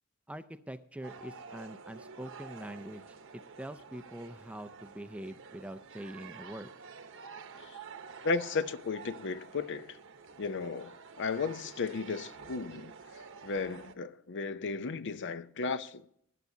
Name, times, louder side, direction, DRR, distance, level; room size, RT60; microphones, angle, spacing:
voice 1, 0.3-6.7, right 1 dB, 5° right, 0.5 m, -44 dB
sound 1, 1.0-13.9, right 5 dB, 60° right, 1.0 m, -49 dB
voice 2, 8.2-10.0 10.4-12.9 13.4-16.1, left 4 dB, 55° left, 0.6 m, -35 dB
20.0 x 9.4 x 2.7 m
head